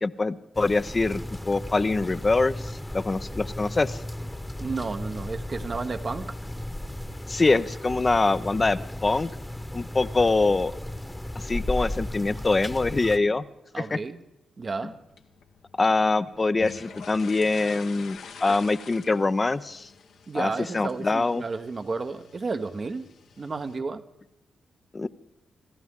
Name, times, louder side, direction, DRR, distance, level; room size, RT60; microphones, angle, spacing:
voice 1, 0.0-4.0 7.3-9.3 9.7-10.7 11.4-13.5 13.8-14.0 15.8-19.9 20.3-21.4 24.9-25.1, left 3 dB, 35° left, 0.6 m, -24 dB
sound 1, 0.5-13.2, left 1 dB, 10° left, 1.1 m, -35 dB
voice 2, 4.6-6.3 13.7-14.2 14.6-15.0 20.3-23.1 23.4-24.0, right 4 dB, 50° right, 1.0 m, -32 dB
sound 2, 14.9-23.8, left 6 dB, 80° left, 1.1 m, -46 dB
26.0 x 14.0 x 3.7 m
hypercardioid pair, 40°, 0 cm